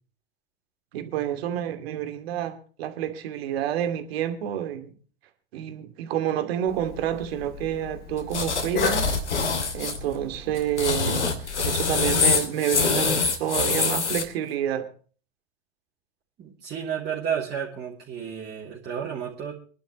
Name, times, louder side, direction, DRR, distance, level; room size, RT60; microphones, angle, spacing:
voice 1, 0.9-4.9 5.5-9.2 9.7-14.9, right 10 dB, 60° right, 2.6 m, -29 dB
Cough, 6.7-12.1, left 5 dB, 30° left, 3.3 m, -36 dB
sound 1, 8.3-10.0 10.6-14.2, left 5 dB, 90° left, 2.9 m, -24 dB
voice 2, 16.4-19.5, right 8 dB, 30° right, 3.6 m, -32 dB
26.0 x 11.5 x 3.2 m
hypercardioid pair, 105°, 33 cm